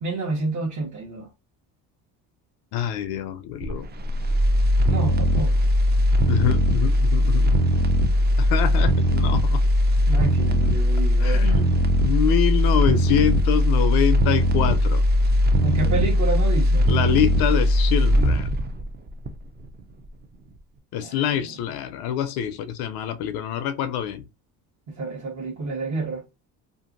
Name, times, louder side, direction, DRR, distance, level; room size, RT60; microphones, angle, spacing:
voice 1, 0.0-1.3 4.9-5.6 10.0-11.8 15.6-16.9 21.0-21.2 25.0-26.2, right 3 dB, 45° right, 1.0 m, -29 dB
voice 2, 2.7-3.9 6.2-7.7 8.4-9.6 11.2-11.7 12.0-15.0 16.9-18.5 20.9-24.2, left 10 dB, 70° left, 0.5 m, -25 dB
sound 1, 3.6-19.7 20.1-20.2, equal, 25° right, 0.5 m, -20 dB
2.6 x 2.6 x 2.5 m
supercardioid pair, 80°, 39 cm